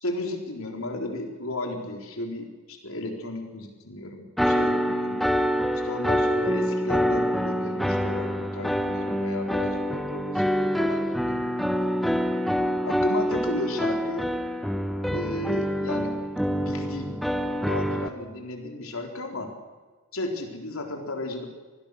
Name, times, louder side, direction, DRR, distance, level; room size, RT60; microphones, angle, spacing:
voice 1, 0.0-5.2 5.8-11.5 12.8-14.3 15.1-16.2 16.5-17.2 17.6-19.5 20.1-21.5, left 1 dB, 75° left, 3 dB, 4.1 m, -34 dB
sound 1, 4.4-18.1, equal, ahead, 1.1 m, -26 dB
26.0 x 19.5 x 6.7 m, 1.4 s
head